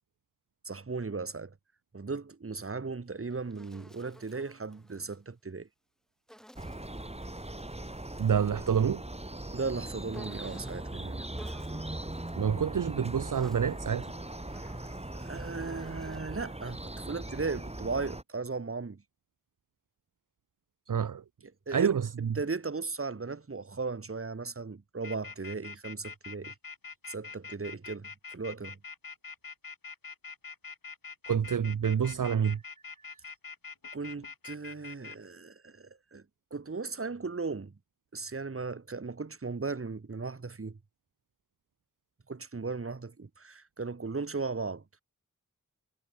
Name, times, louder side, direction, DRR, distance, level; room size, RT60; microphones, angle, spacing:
voice 1, 0.6-1.5 1.9-5.7 9.5-11.2 15.2-19.0 21.7-21.9 22.4-26.5 27.1-28.8 33.9-36.2 36.5-37.7 38.1-40.8 42.3-44.8, right 4 dB, 40° right, 1.3 m, -37 dB
Insect, 3.0-5.2 6.3-8.4 10.1-10.9 11.4-12.5 13.1-16.4, equal, ahead, 6.9 m, -55 dB
sound 1, 6.6-18.2, right 1 dB, 20° right, 2.4 m, -40 dB
voice 2, 8.2-9.0 12.4-14.1 20.9-21.2 21.7-22.3 31.3-32.6 33.0-33.2, right 7 dB, 65° right, 0.8 m, -28 dB
sound 2, 25.0-35.2, left 5 dB, 85° left, 4.3 m, -44 dB
cardioid pair, 40°, 34 cm